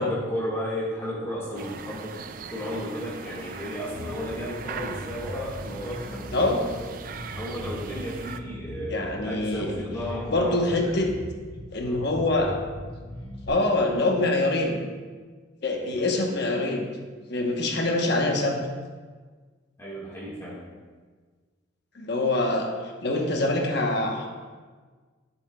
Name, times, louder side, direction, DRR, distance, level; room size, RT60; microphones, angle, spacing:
voice 1, 0.0-2.1 2.5-6.6 7.3-11.0 11.8-12.0 15.7-16.0 19.8-20.6, equal, 15° left, -8 dB, 1.7 m, -34 dB
sound 1, 1.6-8.4, right 5 dB, 45° right, 0.4 m, -40 dB
Bass guitar, 3.9-13.5, left 1 dB, 30° left, 2.5 m, -40 dB
voice 2, 8.9-9.8 10.3-11.1 11.7-12.6 13.5-14.8 15.6-16.9 17.3-18.6 21.9-22.7 23.0-24.3, left 2 dB, 55° left, 2 dB, 1.1 m, -24 dB
12.5 x 7.1 x 2.3 m, 1.5 s
head